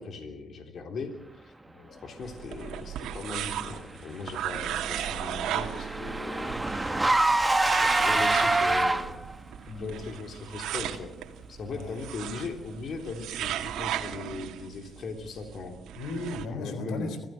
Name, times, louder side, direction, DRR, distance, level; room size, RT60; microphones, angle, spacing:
voice 1, 0.0-1.5 2.0-7.0 7.7-9.2 9.8-11.1 11.5-15.8 16.5-17.1, left 4 dB, 60° left, 4 dB, 3.5 m, -39 dB
voice 2, 1.6-2.0 4.4-4.6 8.1-8.8 9.7-9.9 11.7-12.0 15.9-17.3, left 2 dB, 80° left, 10 dB, 3.7 m, -38 dB
sound 1, 2.2-16.5, right 11 dB, 85° right, 2.2 m, -36 dB
Car / Engine, 4.3-9.4, right 2 dB, 15° right, 1.6 m, -26 dB
25.5 x 15.5 x 7.8 m, 0.87 s
cardioid pair, 90°, 0 cm